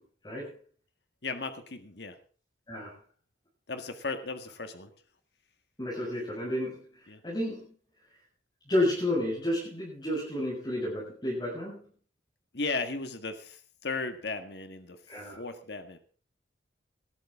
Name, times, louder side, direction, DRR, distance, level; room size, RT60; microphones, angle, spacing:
voice 1, 1.2-2.2 3.7-4.9 7.1-7.2 12.5-16.0, left 3 dB, 60° left, 8 dB, 1.7 m, -36 dB
voice 2, 5.8-7.7 8.7-11.9 15.1-15.4, left 1 dB, 25° left, -6 dB, 7.0 m, -31 dB
19.5 x 13.0 x 3.7 m, 0.39 s
head